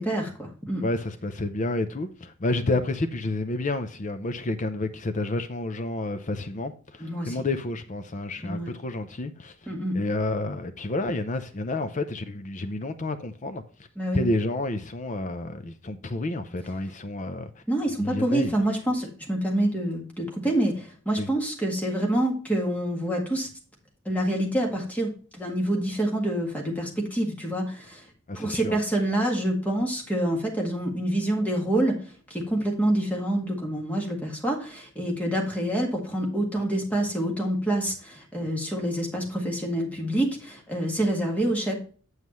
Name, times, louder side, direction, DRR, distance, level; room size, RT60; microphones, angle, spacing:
voice 1, 0.0-0.8 7.0-7.4 8.4-8.7 9.7-10.0 14.0-14.2 17.7-23.5 24.0-28.0 28.3-32.0 32.3-41.8, right 1 dB, 5° left, 1.7 m, -27 dB
voice 2, 0.8-9.5 9.9-13.6 14.1-17.6 18.0-18.5 21.2-21.3 28.3-28.8, left 2 dB, 35° left, 0.6 m, -30 dB
8.0 x 7.3 x 3.1 m
head